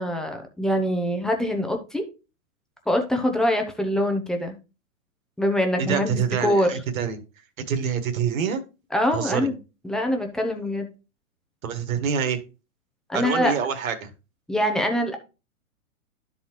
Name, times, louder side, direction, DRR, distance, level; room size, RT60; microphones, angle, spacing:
voice 1, 0.0-2.0 2.9-4.6 5.4-6.7 8.9-9.6 9.8-10.9 13.1-13.5 14.5-15.2, left 1 dB, ahead, 3 dB, 0.5 m, -24 dB
voice 2, 5.8-7.2 7.7-8.6 9.1-9.5 11.6-12.4 13.1-14.1, right 7 dB, 70° right, 9 dB, 1.7 m, -26 dB
12.0 x 4.1 x 3.0 m, 0.30 s
hypercardioid pair, 135°, 43 cm